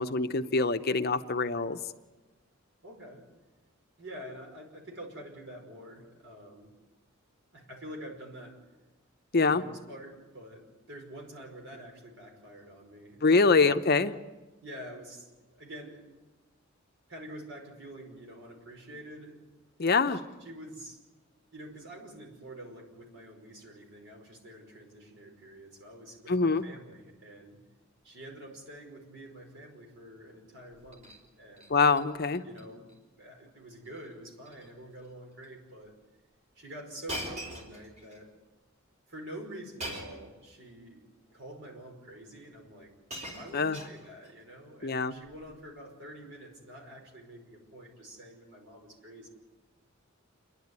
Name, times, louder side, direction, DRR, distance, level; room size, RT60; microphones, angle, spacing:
voice 1, 0.0-1.8 9.3-9.6 13.2-14.2 19.8-20.2 26.3-26.6 31.7-32.4 43.5-43.8 44.8-45.1, left 4 dB, 50° left, 9 dB, 0.8 m, -24 dB
voice 2, 2.8-3.3 4.0-6.7 7.5-8.6 9.4-13.7 14.6-16.1 17.1-19.5 20.1-21.0 21.5-27.6 28.0-31.1 31.3-31.7 32.4-32.9 33.2-36.0 36.6-38.3 39.1-41.0 41.3-42.9 43.3-49.3, right 1 dB, 60° right, 1 dB, 5.3 m, -47 dB
Shatter, 30.7-31.2 31.6-32.0 32.4-32.6 32.9-33.0 33.9-34.1 34.4-34.7 35.4-35.5 37.1-38.2 39.8-40.3 41.3-41.4 42.4-42.5 42.8-44.3 45.3-45.5, equal, 35° right, 4.2 m, -42 dB
28.5 x 11.5 x 9.6 m, 1.2 s
head